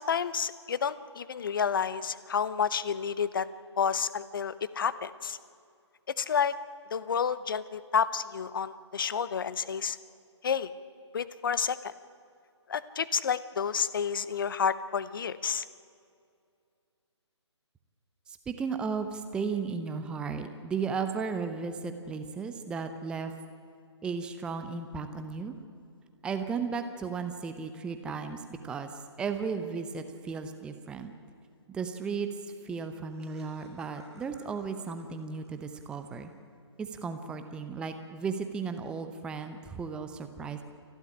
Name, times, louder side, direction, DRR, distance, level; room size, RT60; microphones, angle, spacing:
voice 1, 0.0-3.5 3.8-5.4 6.1-6.5 6.9-10.0 10.4-10.7 11.1-11.9 12.7-15.6, left 7 dB, 45° left, 16 dB, 0.9 m, -30 dB
voice 2, 18.3-23.3 24.0-25.5 26.2-31.1 31.7-32.3 32.6-36.3 36.8-40.6, right 5 dB, 5° right, 8 dB, 0.7 m, -35 dB
Laughter, 32.9-36.5, equal, 65° right, 6.7 m, -59 dB
28.5 x 12.0 x 10.0 m, 2.4 s
figure-of-eight pair, 135°, 15 cm